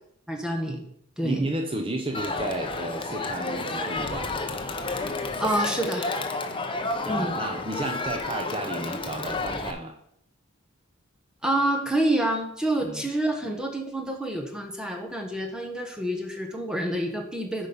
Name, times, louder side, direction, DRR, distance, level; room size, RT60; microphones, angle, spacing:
voice 1, 0.3-0.8 1.2-1.4 5.4-6.1 7.1-7.4 11.4-17.7, right 1 dB, 5° right, 2 dB, 1.3 m, -27 dB
voice 2, 1.2-4.3 7.0-10.0 12.8-13.1, right 2 dB, 25° right, 3 dB, 0.8 m, -32 dB
Crowd, 2.1-9.7, left 3 dB, 25° left, 0.8 m, -31 dB
8.4 x 5.2 x 5.4 m, 0.70 s
head